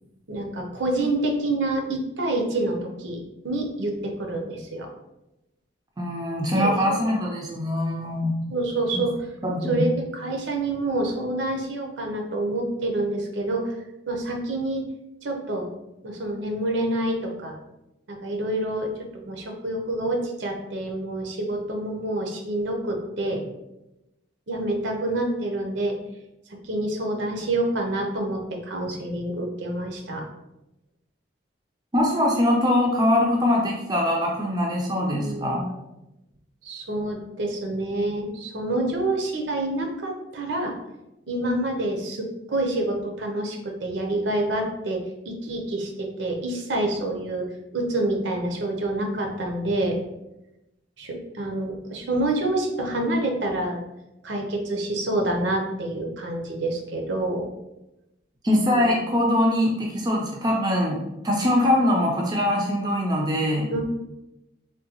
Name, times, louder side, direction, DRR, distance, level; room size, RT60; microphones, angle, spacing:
voice 1, 0.3-4.9 6.5-7.0 8.5-9.2 9.7-13.8 14.1-14.8 15.2-15.7 16.0-17.5 18.1-23.4 24.5-25.9 26.6-30.2 34.9-35.7 36.6-40.7 41.3-45.0 45.2-47.5 47.7-50.0 51.0-53.8 54.2-57.5 58.7-59.0 63.7-63.8, right 1 dB, 70° right, 2 dB, 0.6 m, -27 dB
voice 2, 6.0-8.3 9.4-9.8 31.9-35.7 58.4-63.7, left 1 dB, 20° right, -2 dB, 0.4 m, -22 dB
3.6 x 2.2 x 2.8 m, 0.93 s
head